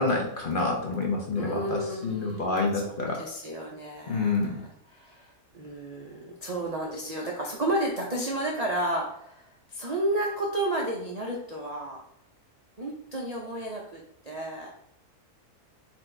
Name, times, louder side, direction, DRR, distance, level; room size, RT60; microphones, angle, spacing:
voice 1, 0.0-3.2 4.1-4.5, left 3 dB, 50° left, -1 dB, 0.7 m, -27 dB
voice 2, 1.4-12.0 12.8-14.7, right 1 dB, 45° right, -2 dB, 0.5 m, -32 dB
4.3 x 2.7 x 4.3 m, 0.74 s
omnidirectional pair, 1.6 m